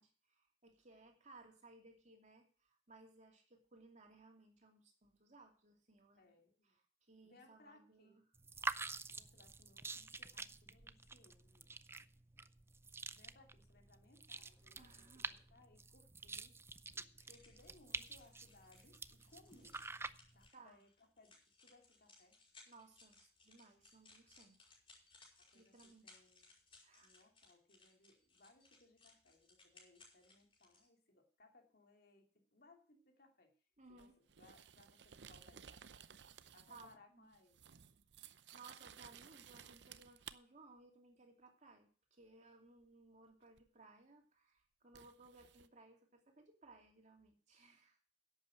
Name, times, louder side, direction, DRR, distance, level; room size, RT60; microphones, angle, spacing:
voice 1, 0.0-6.3 6.6-6.8 7.1-8.1 14.8-15.3 20.5-20.8 22.7-24.5 25.5-26.2 26.8-27.1 33.8-34.2 36.7-37.3 38.5-48.0, right 3 dB, 45° right, 2 dB, 2.7 m, -62 dB
voice 2, 6.2-6.8 7.2-8.2 9.1-11.7 13.1-16.6 16.9-19.8 20.3-21.4 21.6-22.4 25.4-26.5 27.0-33.6 33.9-35.8 36.5-37.6, left 2 dB, 60° left, 3 dB, 2.9 m, -67 dB
sound 1, 8.3-20.5, right 3 dB, 15° right, 0.5 m, -48 dB
sound 2, 17.2-30.9, left 3 dB, 30° left, 5.5 m, -66 dB
sound 3, 34.0-37.0 37.3-40.4 43.6-43.7 44.9-45.7, right 8 dB, 75° right, 0.7 m, -57 dB
11.0 x 8.2 x 6.5 m, 0.41 s
head